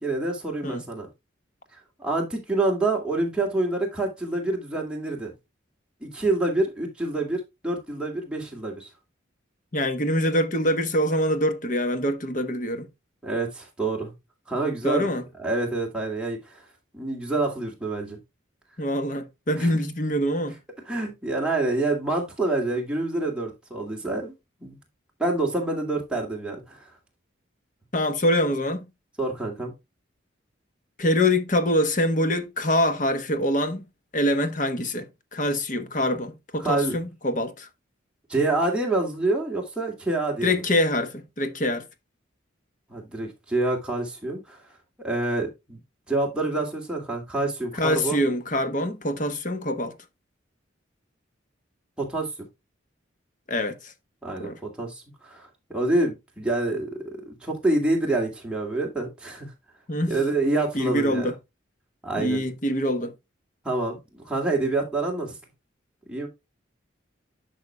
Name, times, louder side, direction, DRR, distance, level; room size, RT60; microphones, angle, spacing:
voice 1, 0.0-1.1 2.0-5.3 6.0-8.9 13.2-14.1 14.5-15.1 15.4-16.6 16.9-18.2 19.6-19.7 20.9-24.3 24.6-24.8 25.2-26.8 29.2-29.7 36.6-37.0 38.3-40.6 42.9-44.6 45.0-45.8 46.1-48.2 52.0-52.3 54.2-59.5 60.1-61.3 62.0-62.4 63.6-65.3 66.1-66.3, right 2 dB, 5° right, 2.4 m, -27 dB
voice 2, 9.7-12.9 14.8-15.2 18.8-20.6 27.9-28.9 31.0-33.9 34.1-37.7 40.4-41.8 47.7-50.0 53.5-53.9 54.4-54.6 59.9-60.2 60.7-61.3 62.2-63.1, left 1 dB, 40° left, 1.1 m, -25 dB
11.0 x 6.1 x 2.3 m
head